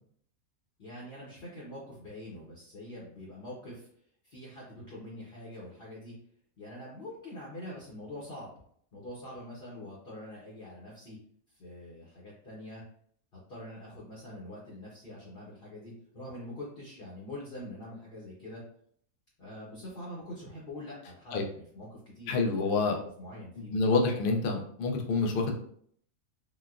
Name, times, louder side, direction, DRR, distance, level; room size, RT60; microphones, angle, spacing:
voice 1, 0.8-3.9 4.2-6.1 6.6-8.5 8.9-11.2 11.5-12.8 13.3-18.6 19.4-22.5 22.8-23.8, left 1 dB, 50° left, -5 dB, 0.9 m, -44 dB
voice 2, 22.3-23.0 23.7-25.5, left 3 dB, 75° left, 2 dB, 0.5 m, -27 dB
3.8 x 2.3 x 2.3 m, 0.63 s
omnidirectional pair, 1.5 m